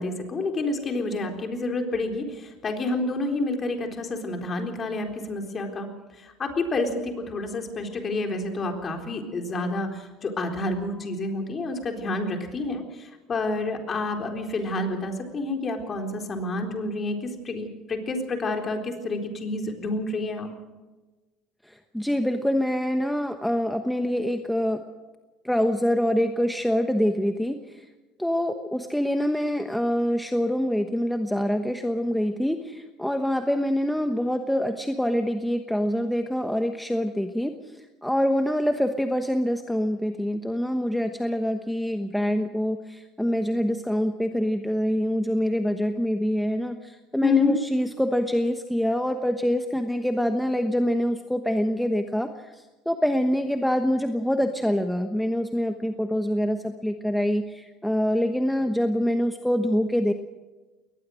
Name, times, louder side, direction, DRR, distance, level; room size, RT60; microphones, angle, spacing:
voice 1, 0.0-5.9 6.2-20.5 47.2-47.6, left 2 dB, 30° left, 4 dB, 3.9 m, -29 dB
voice 2, 21.7-24.8 25.4-27.9 28.2-60.1, equal, ahead, 6 dB, 1.1 m, -25 dB
22.0 x 19.5 x 6.4 m, 1.2 s
cardioid pair, 130°, 0 cm